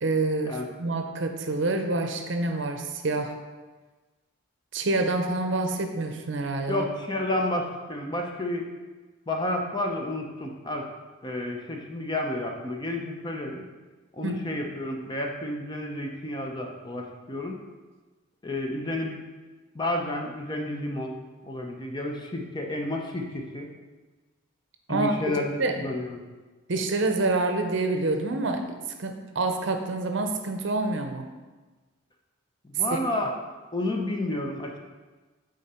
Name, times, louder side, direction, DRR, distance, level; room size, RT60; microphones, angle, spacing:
voice 1, 0.0-3.3 4.7-6.9 14.2-14.4 24.9-25.1 25.6-25.9 26.7-28.6 29.0-31.3 32.9-33.0, right 2 dB, 60° right, 5 dB, 0.7 m, -27 dB
voice 2, 6.7-8.6 9.3-10.9 11.2-13.7 14.1-17.6 18.4-19.2 19.7-21.1 21.4-23.7 24.9-26.2 32.6-33.4 33.7-34.8, left 1 dB, 20° left, 1 dB, 0.7 m, -31 dB
8.9 x 3.8 x 4.3 m, 1.3 s
head